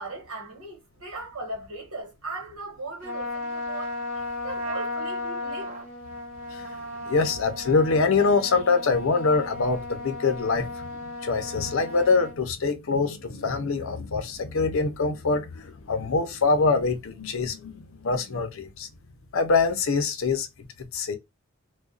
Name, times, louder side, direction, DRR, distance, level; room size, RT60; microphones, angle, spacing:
voice 1, 0.0-4.0 4.4-5.7, right 2 dB, 90° right, 1.2 m, -38 dB
Trumpet, 3.0-12.4, left 2 dB, 35° right, 0.8 m, -35 dB
voice 2, 7.1-18.9 19.3-20.5 20.9-21.2, left 4 dB, 70° left, 0.6 m, -24 dB
2.4 x 2.2 x 2.4 m
head